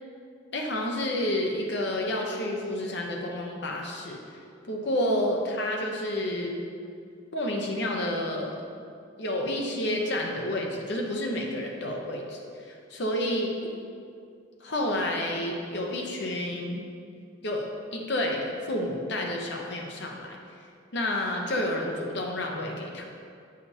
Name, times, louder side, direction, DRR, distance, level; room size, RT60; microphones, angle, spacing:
voice 1, 0.5-4.2 4.7-6.5 7.3-8.6 9.2-13.7 14.6-16.8 17.4-17.7 17.9-20.4 20.9-23.0, left 1 dB, 55° left, 0 dB, 0.8 m, -30 dB
8.1 x 5.0 x 2.8 m, 2.3 s
head